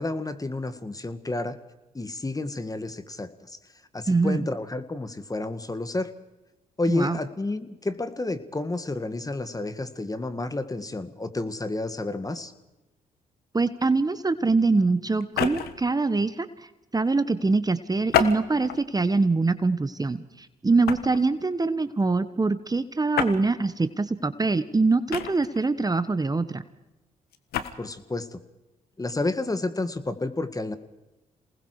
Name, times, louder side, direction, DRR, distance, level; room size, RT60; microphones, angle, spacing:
voice 1, 0.0-1.6 1.9-3.6 3.9-6.1 6.8-12.5 27.8-28.4 29.0-30.7, left 2 dB, 20° left, 10 dB, 1.9 m, -30 dB
voice 2, 4.1-4.5 6.9-7.2 13.5-16.5 16.9-26.6, right 3 dB, 25° right, 12 dB, 1.3 m, -24 dB
sound 1, 15.2-15.9 18.1-18.9 19.5-19.7 20.9-21.2 23.1-23.4 25.1-25.7 27.3-27.7, left 9 dB, 80° left, 1.5 m, -28 dB
27.5 x 19.5 x 4.9 m, 1.0 s
supercardioid pair, 55°, 16 cm